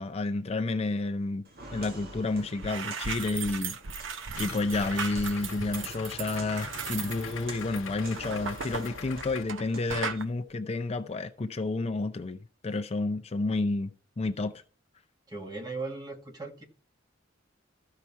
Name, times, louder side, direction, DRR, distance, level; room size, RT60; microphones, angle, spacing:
voice 1, 0.0-1.4 1.7-3.8 4.4-13.9 14.2-14.6, left 3 dB, 30° left, 0.5 m, -30 dB
Walk footsteps, 1.4-10.2, right 2 dB, 55° right, 1.7 m, -48 dB
sound 1, 2.1-2.3 2.5-9.6 9.9-10.2, right 5 dB, 75° right, 0.8 m, -37 dB
Idling, 4.3-9.4, left 5 dB, 75° left, 0.7 m, -42 dB
voice 2, 15.3-16.6, right 3 dB, 20° right, 1.7 m, -38 dB
13.5 x 5.6 x 4.6 m
head